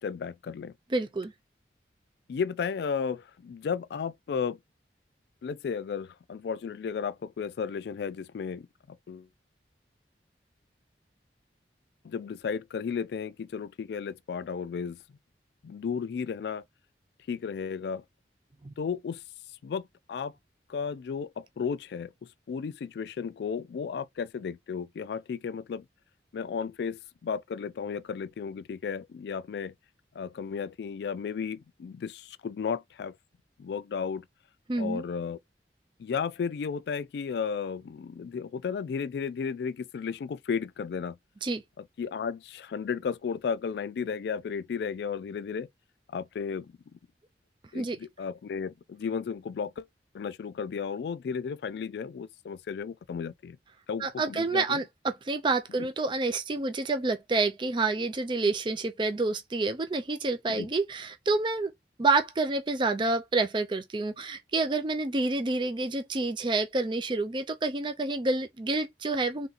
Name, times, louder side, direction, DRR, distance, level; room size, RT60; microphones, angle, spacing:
voice 1, 0.0-0.7 2.3-4.6 5.4-9.3 12.0-15.0 15.6-16.6 17.3-18.0 18.8-19.2 19.6-20.3 20.7-22.1 22.5-25.8 26.3-29.7 30.2-33.1 33.6-34.3 34.8-35.4 36.0-41.2 41.8-45.7 46.1-47.0 47.7-49.9 50.1-53.6 53.9-54.8 55.8-55.9 60.5-60.7, left 6 dB, 65° left, 0.3 m, -34 dB
voice 2, 0.9-1.3 18.6-18.7 34.7-35.0 41.4-41.6 47.7-48.0 54.0-61.7 62.0-69.5, right 3 dB, 25° right, 0.4 m, -28 dB
3.4 x 2.8 x 3.9 m
head